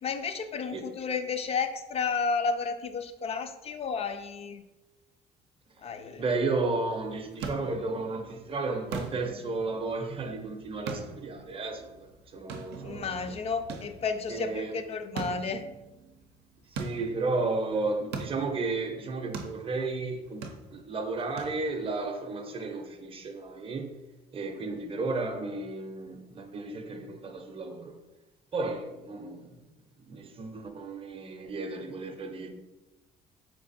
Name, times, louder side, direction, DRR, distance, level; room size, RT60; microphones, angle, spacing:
voice 1, 0.0-4.6 5.8-6.2 12.8-15.6, left 5 dB, 35° left, 0.4 m, -32 dB
voice 2, 6.2-13.4 14.3-14.8 16.7-24.0 24.3-28.0 28.5-29.6 30.1-32.5, right 3 dB, 35° right, 0.6 m, -33 dB
sound 1, 6.9-22.0, right 4 dB, 85° right, 0.6 m, -43 dB
3.5 x 3.3 x 4.0 m
cardioid pair, 110°, 17 cm